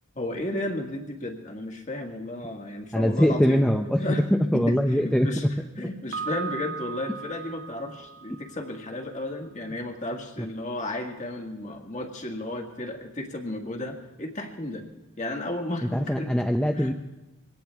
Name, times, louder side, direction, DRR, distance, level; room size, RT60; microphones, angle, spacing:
voice 1, 0.1-3.6 4.0-5.5 5.7-14.8 15.2-16.3 16.7-16.9, left 1 dB, 35° left, 2 dB, 1.9 m, -33 dB
voice 2, 2.9-4.0 4.3-5.3 5.8-5.9 15.9-16.9, equal, 5° left, 3 dB, 0.6 m, -22 dB
Piano, 6.1-9.0, right 6 dB, 50° right, 0.8 m, -37 dB
23.0 x 17.5 x 3.5 m, 1.0 s
head